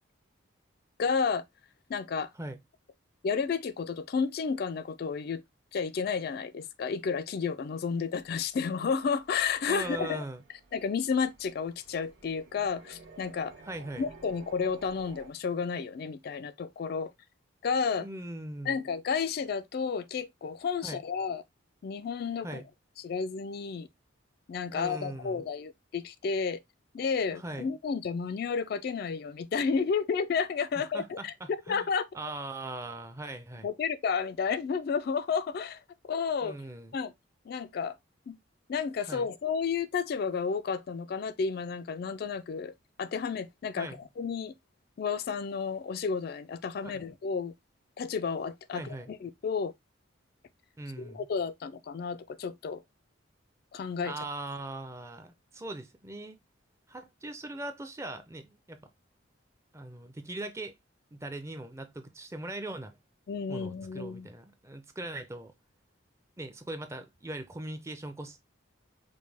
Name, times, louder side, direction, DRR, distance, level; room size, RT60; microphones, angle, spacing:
voice 1, 1.0-1.4 1.9-2.3 3.2-5.4 5.7-10.2 10.7-13.5 14.0-17.1 17.6-18.1 18.7-21.4 21.8-22.6 23.0-23.9 24.5-26.6 26.9-31.3 31.7-32.1 33.6-36.6 36.9-37.1 37.5-38.0 38.3-38.4 38.7-42.7 43.0-44.5 45.0-47.5 48.0-49.7 51.0-52.8 53.7-54.1 63.3-64.3, left 5 dB, 50° left, 0.3 m, -31 dB
sound 1, 8.2-15.3, right 3 dB, 75° right, 1.5 m, -54 dB
voice 2, 9.7-10.4 13.7-14.1 18.0-18.8 20.8-21.0 22.4-22.7 24.7-25.5 27.3-27.7 30.8-31.9 32.1-33.7 36.4-37.0 39.1-39.3 43.8-44.0 46.8-47.0 48.7-49.1 50.8-51.3 54.0-56.4 56.9-58.8 59.7-60.7 61.1-62.9 63.5-65.5 66.4-68.4, right 1 dB, 15° right, 0.5 m, -40 dB
5.2 x 2.2 x 3.3 m
head